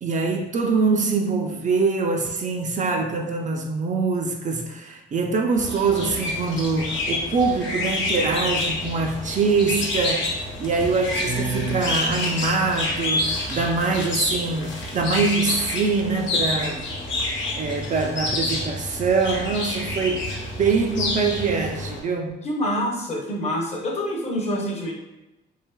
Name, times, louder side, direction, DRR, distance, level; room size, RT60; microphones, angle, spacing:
voice 1, 0.0-16.8 17.6-20.3 20.6-22.4, right 4 dB, 40° right, 2 dB, 0.4 m, -24 dB
sound 1, 5.6-22.0, left 2 dB, 70° left, 1.0 m, -28 dB
voice 2, 11.2-11.8 22.4-24.9, equal, 35° left, 0 dB, 0.6 m, -26 dB
3.2 x 2.8 x 2.2 m, 1.0 s
cardioid pair, 90°, 20 cm